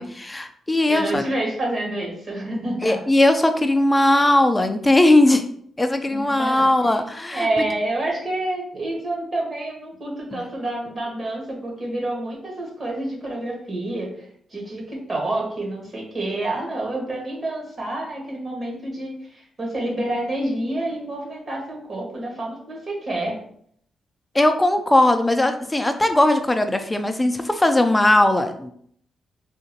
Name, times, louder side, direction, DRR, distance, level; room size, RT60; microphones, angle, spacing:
voice 1, 0.0-1.2 2.8-5.4 5.8-7.6 10.3-10.4 24.3-28.7, left 1 dB, 15° left, 7 dB, 0.4 m, -19 dB
voice 2, 0.9-3.0 6.1-6.7 7.3-23.4, right 1 dB, 40° right, -2 dB, 1.4 m, -28 dB
3.7 x 2.5 x 2.8 m, 0.65 s
cardioid pair, 80°, 0 cm